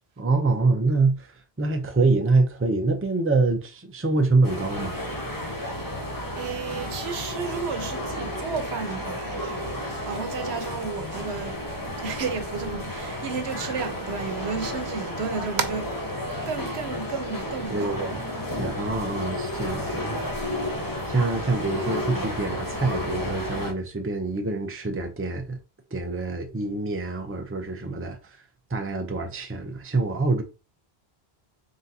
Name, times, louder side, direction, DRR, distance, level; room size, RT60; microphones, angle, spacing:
voice 1, 0.2-1.3 1.6-4.9 17.7-18.2 18.6-20.3 21.1-25.6 25.9-28.2 28.7-30.4, right 3 dB, 15° right, 0.5 m, -25 dB
sound 1, 4.4-23.7, left 1 dB, 20° left, 0.9 m, -32 dB
voice 2, 6.3-11.6 12.0-15.9 16.5-18.1 22.1-22.3, right 5 dB, 85° right, 1.0 m, -32 dB
3.8 x 3.8 x 2.7 m
omnidirectional pair, 1.1 m